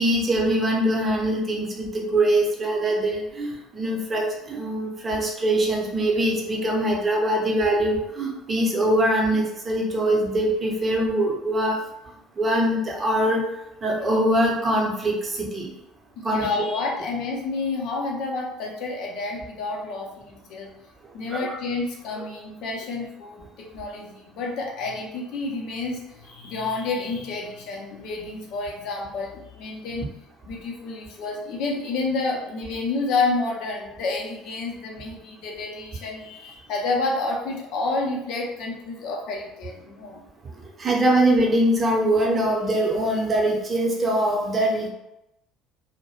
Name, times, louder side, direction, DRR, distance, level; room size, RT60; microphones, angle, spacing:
voice 1, 0.0-11.8 12.4-13.4 13.8-15.7 16.2-16.5 21.3-21.6 40.8-44.9, right 1 dB, 30° right, -1 dB, 0.7 m, -23 dB
voice 2, 16.2-20.7 21.1-30.1 30.4-40.2, left 3 dB, 55° left, 0 dB, 0.5 m, -29 dB
2.2 x 2.0 x 3.1 m, 0.87 s
figure-of-eight pair, 55°, 0 cm